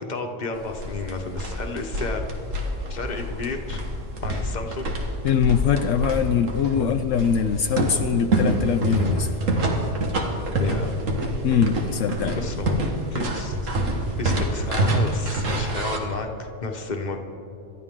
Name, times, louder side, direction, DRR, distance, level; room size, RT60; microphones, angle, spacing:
voice 1, 0.0-2.2 2.9-3.8 4.2-4.9 6.7-6.9 10.6-10.9 12.3-12.8 13.1-13.6 14.1-17.2, left 3 dB, 35° left, 3 dB, 1.2 m, -31 dB
sound 1, 0.5-16.0, right 1 dB, 75° right, 1.9 m, -26 dB
voice 2, 5.2-9.3 11.4-12.4 14.3-14.4, left 7 dB, 75° left, 7 dB, 1.0 m, -22 dB
27.5 x 13.0 x 3.7 m, 2.9 s
omnidirectional pair, 1.3 m